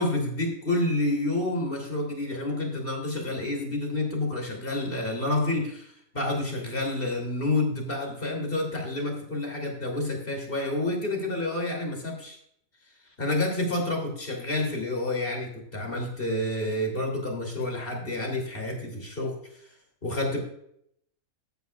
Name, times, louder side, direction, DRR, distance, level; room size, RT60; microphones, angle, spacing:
voice 1, 0.0-12.4 13.2-19.7 20.0-20.4, left 2 dB, 40° left, 2 dB, 3.0 m, -29 dB
13.5 x 9.7 x 2.3 m, 0.71 s
omnidirectional pair, 1.5 m